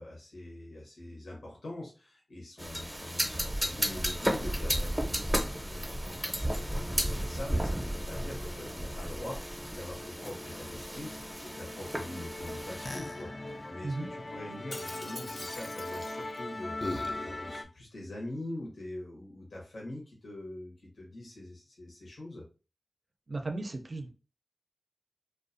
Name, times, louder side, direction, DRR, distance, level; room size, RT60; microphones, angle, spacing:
voice 1, 0.0-22.4, left 1 dB, 85° left, -2 dB, 0.8 m, -44 dB
sound 1, 2.6-13.0, equal, 10° right, 0.6 m, -34 dB
Musical instrument, 6.4-17.6, left 2 dB, 35° left, 0.3 m, -41 dB
voice 2, 23.3-24.1, right 2 dB, 55° right, 5 dB, 0.4 m, -35 dB
2.4 x 2.2 x 2.5 m, 0.33 s
cardioid pair, 45°, 0 cm